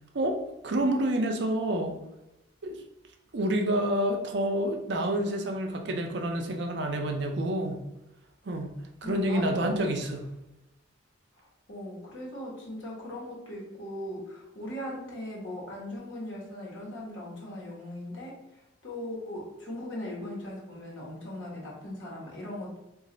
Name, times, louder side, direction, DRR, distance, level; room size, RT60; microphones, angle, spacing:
voice 1, 0.6-1.9 2.6-2.8 3.3-7.8 8.5-8.7 9.0-10.2, right 1 dB, 60° right, 3 dB, 0.5 m, -28 dB
voice 2, 9.0-9.9 11.4-18.4 18.8-22.8, left 1 dB, 75° left, -3 dB, 1.2 m, -39 dB
3.1 x 2.5 x 3.8 m, 0.92 s
head